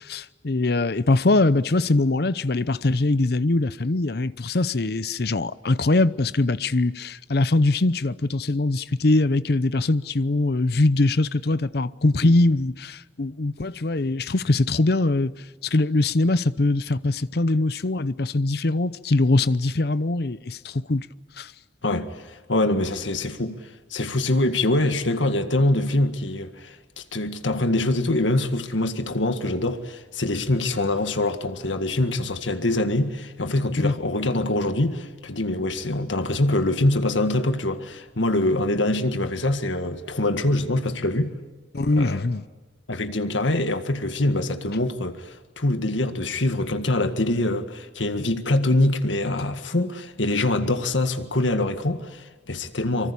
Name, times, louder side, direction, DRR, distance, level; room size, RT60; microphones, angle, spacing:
voice 1, 0.1-15.3 15.6-21.1 21.4-21.5 33.8-33.9 41.7-42.4, left 2 dB, 55° left, 0.7 m, -22 dB
voice 2, 21.8-23.6 23.9-41.3 41.9-42.2 42.9-53.1, left 2 dB, 85° left, 1.8 m, -24 dB
25.0 x 24.0 x 8.5 m
head